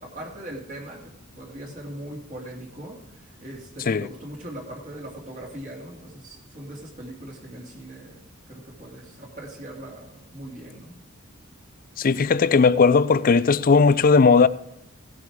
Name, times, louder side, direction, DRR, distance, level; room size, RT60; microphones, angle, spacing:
voice 1, 0.0-8.2 8.5-11.0, right 1 dB, 35° right, 2.4 m, -40 dB
voice 2, 12.0-14.5, left 4 dB, 40° left, 0.4 m, -17 dB
17.5 x 8.5 x 4.8 m
head